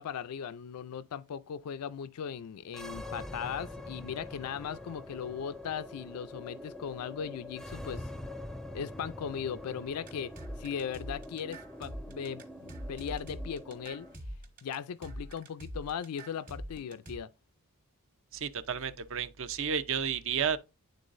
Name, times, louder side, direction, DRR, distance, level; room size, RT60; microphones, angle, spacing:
voice 1, 0.0-8.1 8.7-10.3 10.6-14.1 14.6-17.3, left 7 dB, 90° left, 0.4 m, -38 dB
sound 1, 2.7-14.2, left 1 dB, ahead, 0.3 m, -45 dB
sound 2, 10.1-17.2, equal, 40° right, 1.3 m, -43 dB
voice 2, 18.3-20.6, right 7 dB, 60° right, 0.6 m, -32 dB
10.5 x 3.8 x 2.5 m
head